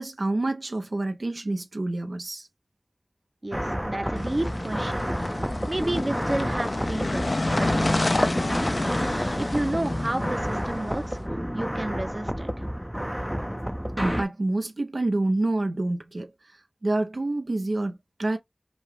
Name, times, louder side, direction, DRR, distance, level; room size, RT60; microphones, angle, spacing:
voice 1, 0.0-2.5 14.0-16.3 16.8-18.4, right 2 dB, 85° right, 0.9 m, -27 dB
voice 2, 3.4-5.1 5.7-7.3 7.6-8.9 9.4-11.2 11.5-12.5, right 1 dB, 50° right, 0.9 m, -31 dB
sound 1, 3.5-14.2, equal, 5° right, 0.5 m, -30 dB
sound 2, 4.1-11.1, left 2 dB, 65° left, 0.5 m, -29 dB
5.3 x 2.4 x 3.3 m
wide cardioid pair, 40°, 0 cm